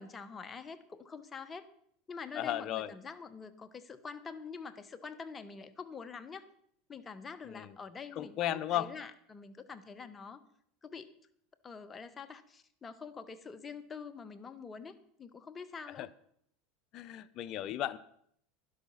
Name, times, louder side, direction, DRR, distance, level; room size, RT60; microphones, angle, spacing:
voice 1, 0.0-1.7 2.1-6.4 6.9-10.4 10.8-11.1 11.6-16.1, left 5 dB, 25° left, 12 dB, 1.2 m, -46 dB
voice 2, 2.4-2.9 7.5-7.7 8.2-8.9 16.0-16.1 16.9-18.0, left 12 dB, 50° left, 15 dB, 0.7 m, -35 dB
12.0 x 11.5 x 5.6 m, 0.67 s
supercardioid pair, 110°, 0 cm